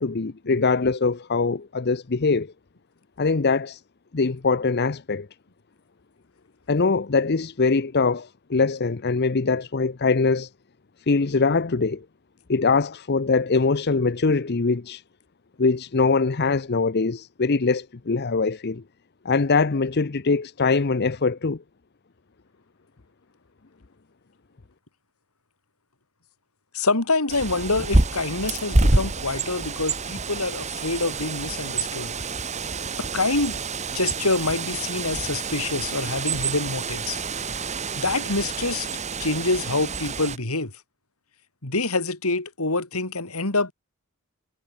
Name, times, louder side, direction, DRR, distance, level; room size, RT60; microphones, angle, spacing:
voice 1, 0.0-2.5 3.2-3.8 4.1-5.3 6.7-10.5 11.1-12.0 12.5-15.0 15.6-18.8 19.2-21.6, left 4 dB, 50° left, 0.7 m, -22 dB
voice 2, 26.7-32.1 33.0-33.6 33.9-37.2 38.0-38.9 39.2-40.7 41.6-43.7, left 3 dB, 85° left, 3.9 m, -26 dB
Bird, 27.3-40.4, right 3 dB, 30° right, 1.7 m, -27 dB
head